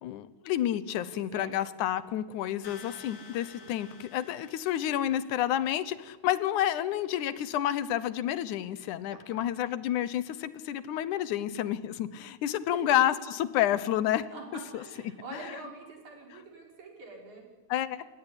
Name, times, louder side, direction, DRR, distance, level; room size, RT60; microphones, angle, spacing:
voice 1, 0.0-14.3 14.7-15.5 17.7-18.1, left 11 dB, 80° left, 15 dB, 2.5 m, -30 dB
voice 2, 1.0-1.5 3.6-3.7 9.1-9.5 12.7-12.8 14.3-17.5, right 3 dB, 75° right, 0 dB, 6.8 m, -45 dB
sound 1, 2.6-5.5, left 5 dB, 40° left, 1.9 m, -51 dB
29.0 x 17.5 x 9.9 m, 1.3 s
omnidirectional pair, 3.4 m